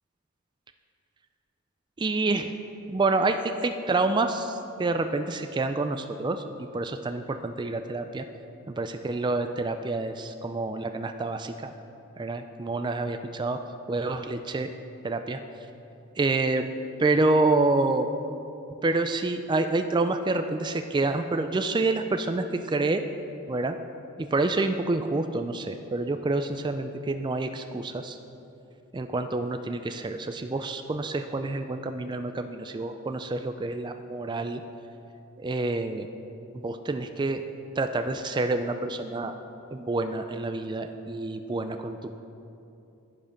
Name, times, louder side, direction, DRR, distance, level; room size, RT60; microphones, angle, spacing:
voice 1, 2.0-2.5 2.9-8.2 8.7-11.7 12.2-13.6 13.9-14.7 15.0-15.4 16.2-16.6 17.0-18.1 18.8-23.0 23.5-23.8 24.2-28.2 28.9-34.6 35.4-36.1 36.5-37.4 37.8-39.3 39.7-42.1, right 2 dB, 20° right, 7 dB, 0.3 m, -28 dB
11.0 x 8.7 x 5.1 m, 2.8 s
head